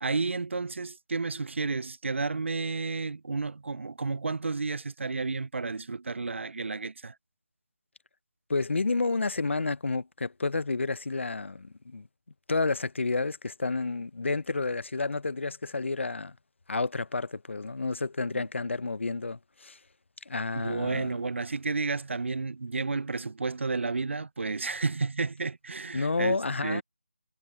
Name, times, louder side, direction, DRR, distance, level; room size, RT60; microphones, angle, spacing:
voice 1, 0.0-7.2 18.3-18.5 20.5-26.4 26.6-26.8, right 4 dB, 65° right, 0.5 m, -31 dB
voice 2, 8.5-12.1 12.5-16.4 16.7-19.8 20.3-21.1 25.9-26.8, left 3 dB, 65° left, 0.7 m, -30 dB
figure-of-eight pair, 170°, 7 cm